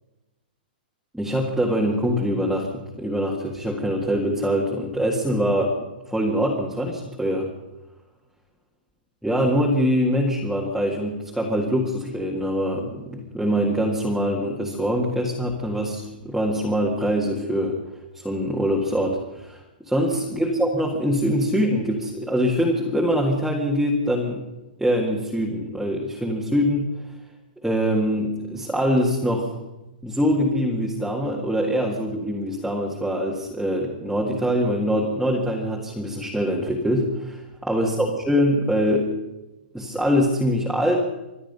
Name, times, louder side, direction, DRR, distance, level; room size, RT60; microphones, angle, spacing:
voice 1, 1.1-5.8 6.1-7.5 9.2-17.8 18.1-24.4 24.8-26.8 27.6-29.6 30.0-39.2 39.7-41.0, equal, ahead, -4 dB, 1.9 m, -23 dB
25.5 x 10.0 x 5.5 m, 1.0 s
hypercardioid pair, 155°, 5 cm